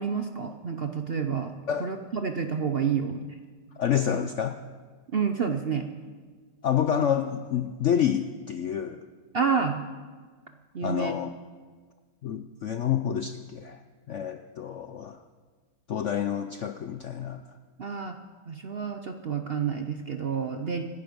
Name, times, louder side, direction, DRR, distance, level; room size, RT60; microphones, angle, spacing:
voice 1, 0.0-1.5 1.8-3.2 5.1-5.9 9.3-9.8 10.7-11.1 17.8-18.1 18.5-20.8, right 6 dB, 55° right, 6 dB, 0.6 m, -29 dB
voice 2, 3.8-4.6 6.6-9.0 10.8-11.4 12.2-13.8 14.1-15.2 15.9-17.4, left 9 dB, 70° left, 9 dB, 0.7 m, -28 dB
25.0 x 11.0 x 5.2 m, 1.5 s
omnidirectional pair, 1.9 m